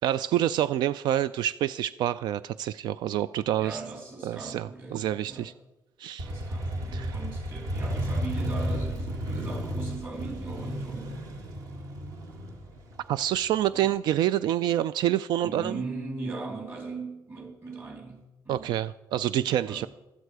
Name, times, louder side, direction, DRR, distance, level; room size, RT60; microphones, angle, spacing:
voice 1, 0.0-3.8 4.2-5.5 6.0-6.3 6.9-7.2 13.1-15.8 18.5-19.9, right 12 dB, 80° right, 16 dB, 0.4 m, -27 dB
voice 2, 3.6-5.5 6.2-11.2 13.7-13.9 15.4-18.7 19.7-19.9, right 3 dB, 25° right, 3 dB, 2.8 m, -39 dB
Motorcycle, 6.2-13.8, equal, 50° right, 2.0 m, -33 dB
14.5 x 13.5 x 4.8 m, 1.0 s
cardioid pair, 180°, 7 cm